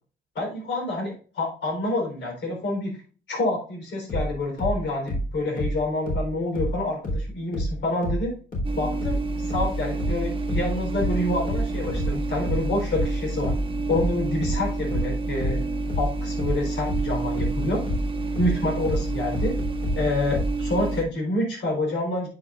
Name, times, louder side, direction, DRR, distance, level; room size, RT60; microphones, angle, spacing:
voice 1, 0.3-3.0 3.3-8.3 8.8-13.5 13.9-15.6 16.0-17.8 18.4-19.6 19.9-22.3, left 2 dB, 65° left, 0 dB, 4.1 m, -27 dB
sound 1, 4.1-7.3 7.5-20.6, equal, 45° left, 3.7 m, -28 dB
Fridge Hum, 8.6-21.0, right 2 dB, 25° right, 1.0 m, -29 dB
9.2 x 5.9 x 2.5 m, 0.39 s
cardioid pair, 90°, 20 cm